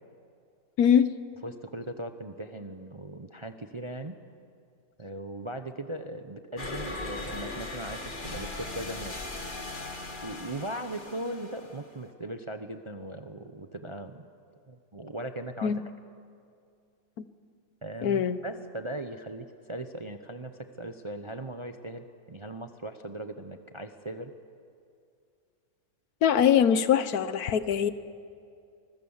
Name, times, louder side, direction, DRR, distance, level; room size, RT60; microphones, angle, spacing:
voice 1, 0.8-1.1 15.6-15.8 17.2-17.3 18.0-18.4 26.2-27.9, left 8 dB, 70° left, 13 dB, 1.3 m, -23 dB
voice 2, 1.4-4.2 5.0-9.2 10.2-14.3 14.7-15.8 17.8-24.3, right 1 dB, 30° right, 7 dB, 0.6 m, -39 dB
sound 1, 6.6-12.1, left 2 dB, 30° left, 2.1 m, -38 dB
25.0 x 21.5 x 7.2 m, 2.4 s
omnidirectional pair, 1.7 m